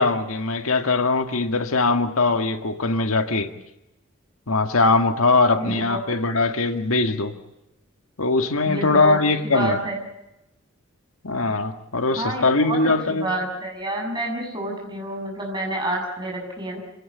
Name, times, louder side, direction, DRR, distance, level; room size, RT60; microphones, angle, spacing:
voice 1, 0.0-3.5 4.5-7.3 8.2-9.8 11.2-13.3, left 3 dB, 85° left, 8 dB, 1.8 m, -21 dB
voice 2, 5.6-6.0 8.7-9.2 9.4-10.0 12.1-16.8, right 1 dB, 20° right, 0 dB, 7.3 m, -29 dB
27.0 x 17.0 x 8.5 m, 0.91 s
head